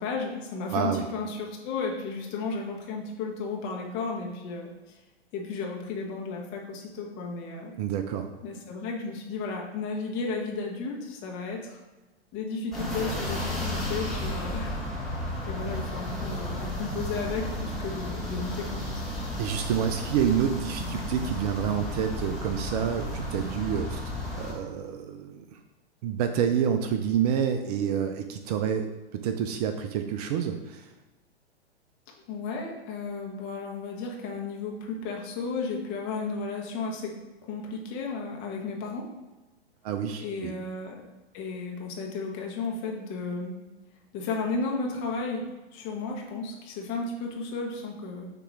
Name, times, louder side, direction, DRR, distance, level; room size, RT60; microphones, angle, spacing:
voice 1, 0.0-5.0 5.3-7.7 8.4-11.8 12.3-14.7 15.0-15.1 15.5-19.1 32.3-37.1 37.5-39.1 40.2-41.0 41.3-43.5 44.1-45.4 45.7-48.3, left 4 dB, 35° left, 0 dB, 1.3 m, -33 dB
voice 2, 0.7-1.0 7.8-8.3 19.4-24.0 24.3-25.6 26.0-28.9 29.1-30.9 39.8-40.5, right 8 dB, 40° right, 7 dB, 0.5 m, -28 dB
sound 1, 12.7-24.5, left 1 dB, ahead, 1.5 m, -33 dB
6.6 x 3.0 x 4.7 m, 1.1 s
hypercardioid pair, 110°, 32 cm